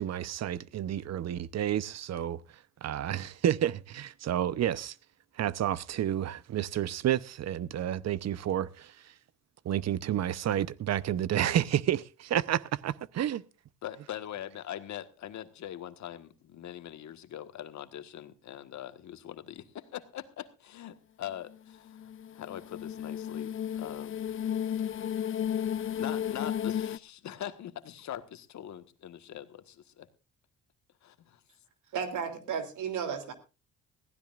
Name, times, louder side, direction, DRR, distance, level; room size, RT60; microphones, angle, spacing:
voice 1, 0.0-2.4 2.8-4.9 5.4-8.9 9.6-13.4, right 11 dB, 60° right, 0.8 m, -30 dB
voice 2, 13.8-22.0 22.3-24.2 26.0-30.1 31.0-31.4, left 11 dB, 70° left, 1.5 m, -42 dB
sound 1, 21.5-27.0, left 9 dB, 45° left, 0.6 m, -33 dB
voice 3, 31.9-33.3, right 7 dB, 75° right, 3.1 m, -33 dB
21.0 x 15.5 x 2.5 m
cardioid pair, 90°, 30 cm